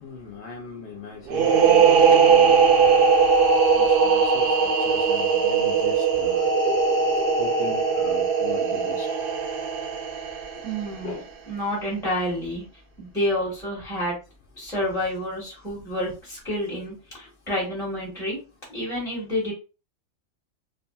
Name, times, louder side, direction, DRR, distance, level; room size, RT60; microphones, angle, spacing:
voice 1, 0.0-2.5 3.8-6.5 7.4-9.1 11.0-11.2, left 4 dB, 65° left, 0.9 m, -39 dB
sound 1, 1.3-10.8, right 5 dB, 65° right, 0.6 m, -19 dB
voice 2, 10.6-11.2 11.5-12.6 13.0-14.2 14.6-18.4 18.7-19.5, equal, 5° left, 1.0 m, -29 dB
2.7 x 2.5 x 2.2 m
omnidirectional pair, 1.3 m